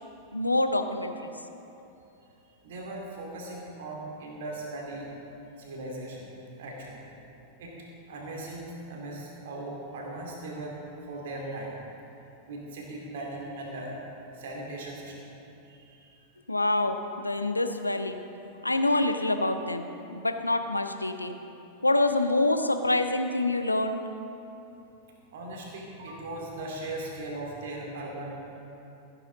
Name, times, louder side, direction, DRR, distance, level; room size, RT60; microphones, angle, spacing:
voice 1, 0.3-1.3 16.5-18.2 18.6-21.4 21.8-24.0, left 2 dB, 85° left, 8 dB, 0.6 m, -26 dB
voice 2, 2.6-5.1 5.6-6.3 6.6-7.0 7.6-7.8 8.1-10.8 11.0-11.7 12.5-14.0 14.3-15.2 15.7-16.2 25.3-28.6, right 2 dB, 55° right, -2 dB, 2.5 m, -38 dB
15.5 x 9.2 x 3.9 m, 2.9 s
figure-of-eight pair, 90°, 0 cm